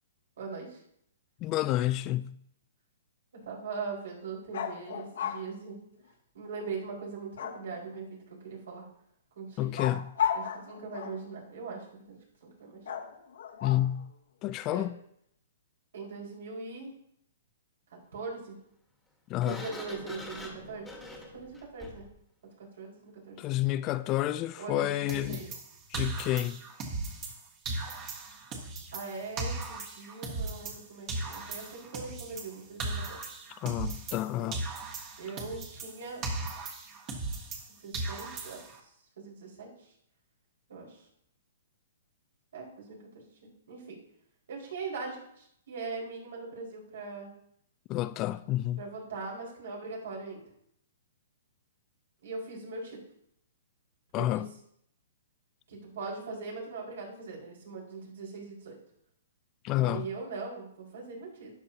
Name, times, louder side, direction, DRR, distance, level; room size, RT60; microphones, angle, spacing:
voice 1, 0.4-0.8 3.3-5.8 6.3-8.8 9.3-9.7 10.3-12.9 14.6-14.9 15.9-16.9 18.1-18.6 19.4-20.9 21.3-22.1 22.8-23.4 24.6-25.5 28.9-33.3 34.3-34.6 35.2-36.2 37.8-39.9 40.7-41.0 42.5-44.0 44.5-47.3 48.8-50.4 52.2-53.0 54.1-54.4 55.7-58.8 59.7-61.5, right 4 dB, 75° right, 5.0 m, -41 dB
voice 2, 1.4-2.4 9.6-10.1 13.6-14.1 14.4-15.0 19.3-19.6 23.4-25.4 25.9-26.6 33.6-34.6 47.9-48.8 54.1-54.5 59.6-60.1, left 14 dB, 25° left, 0.3 m, -29 dB
sound 1, 4.5-5.4 7.4-8.0 9.8-11.3 12.9-14.0, left 8 dB, 75° left, 1.2 m, -34 dB
Sliding door, 19.4-22.2, left 1 dB, 5° left, 1.5 m, -44 dB
sound 2, 25.1-27.4 27.7-30.8 31.1-34.3 34.5-37.7 37.9-38.8, right 2 dB, 30° right, 1.4 m, -37 dB
13.0 x 9.7 x 2.8 m
hypercardioid pair, 150°, 0 cm